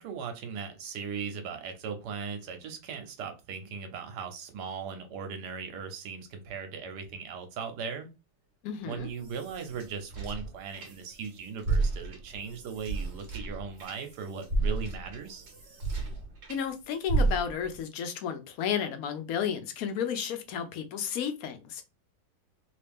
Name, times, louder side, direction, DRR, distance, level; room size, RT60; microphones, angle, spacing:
voice 1, 0.0-8.1 8.8-15.5, right 6 dB, 70° right, 1.3 m, -38 dB
voice 2, 8.6-9.1 16.5-21.8, left 8 dB, 65° left, 1.0 m, -32 dB
sound 1, 8.9-11.3 11.6-16.6 17.1-17.8, right 3 dB, 50° right, 1.0 m, -32 dB
3.1 x 2.7 x 3.4 m
omnidirectional pair, 1.9 m